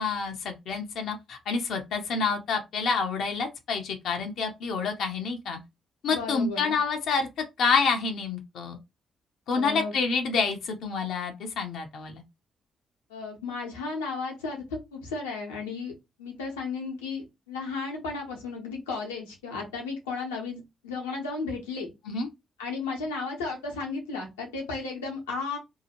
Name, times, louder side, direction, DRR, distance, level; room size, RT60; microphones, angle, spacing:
voice 1, 0.0-5.6 6.0-7.3 7.6-8.8 9.5-12.2 22.1-22.3, left 5 dB, 70° left, 0.6 m, -28 dB
voice 2, 6.0-6.8 9.5-9.9 13.1-14.6 14.9-15.9 16.2-21.9 22.6-25.6, left 4 dB, 90° left, 0.8 m, -34 dB
2.7 x 2.4 x 2.8 m
hypercardioid pair, 40°, 0 cm